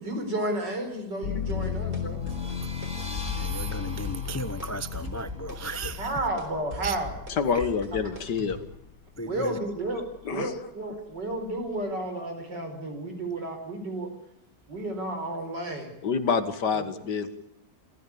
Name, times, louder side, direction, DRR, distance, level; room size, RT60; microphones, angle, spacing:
voice 1, 0.0-2.2 6.0-7.1 7.9-8.0 9.2-10.0 10.3-14.1 14.7-15.9 16.7-16.9, right 1 dB, 80° right, 5 dB, 5.3 m, -32 dB
sound 1, 1.2-9.0 9.5-10.3, left 8 dB, 55° left, 1.5 m, -35 dB
sound 2, 1.5-2.0 2.3-2.9 3.2-4.7 4.9-8.6, left 1 dB, 30° right, 4.5 m, -39 dB
sound 3, 2.1-7.6, equal, 5° right, 2.9 m, -45 dB
voice 2, 3.3-6.1 6.8-7.0 7.5-7.7 9.2-9.6 9.9-10.0, right 2 dB, 20° left, 12 dB, 0.4 m, -35 dB
voice 3, 7.3-8.6 10.2-10.5 16.0-17.3, left 6 dB, 75° left, 11 dB, 2.2 m, -27 dB
27.5 x 14.5 x 8.6 m, 0.82 s
omnidirectional pair, 1.9 m